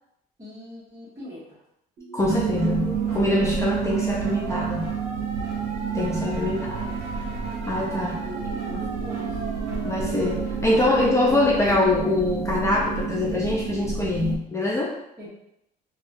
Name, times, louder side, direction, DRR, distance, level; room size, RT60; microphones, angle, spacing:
voice 1, 0.4-1.6 6.4-6.9 8.2-9.4 15.2-15.3, left 1 dB, 15° right, -11 dB, 1.4 m, -41 dB
sound 1, 2.0-12.0, right 2 dB, 55° right, 1.2 m, -37 dB
voice 2, 2.1-4.9 5.9-6.8 7.7-8.2 9.8-14.9, left 2 dB, 15° left, -3 dB, 0.4 m, -24 dB
sound 2, 2.2-14.4, right 7 dB, 90° right, 0.5 m, -29 dB
3.4 x 2.3 x 2.6 m, 0.80 s
cardioid pair, 110°, 17 cm